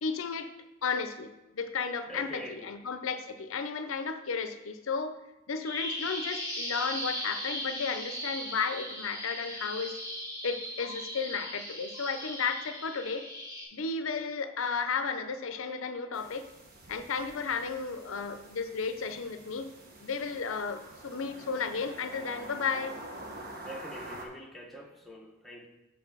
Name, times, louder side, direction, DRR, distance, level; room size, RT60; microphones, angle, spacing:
voice 1, 0.0-0.5 0.8-5.2 5.5-10.0 10.4-13.2 13.7-16.4 16.9-19.7 20.0-22.9, left 5 dB, 65° left, 9 dB, 0.6 m, -33 dB
voice 2, 2.1-2.7 23.6-25.7, equal, ahead, 0 dB, 0.8 m, -44 dB
Bird vocalization bird call bird song, 5.6-13.6, equal, 20° right, 1.8 m, -38 dB
sound 1, 16.1-24.3, right 1 dB, 45° right, 1.2 m, -47 dB
5.9 x 5.1 x 6.7 m, 1.0 s
head